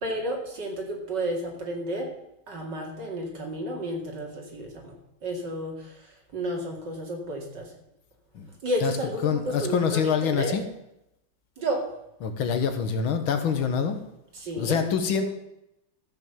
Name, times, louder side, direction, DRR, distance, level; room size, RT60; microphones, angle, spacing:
voice 1, 0.0-2.1 2.5-7.7 8.6-10.6 11.6-11.9 14.3-14.9 15.1-15.3, right 1 dB, 60° right, 1 dB, 3.0 m, -32 dB
voice 2, 9.2-10.6 12.2-14.0 14.6-15.3, left 7 dB, 85° left, 7 dB, 2.1 m, -25 dB
14.5 x 6.2 x 6.9 m, 0.85 s
omnidirectional pair, 2.2 m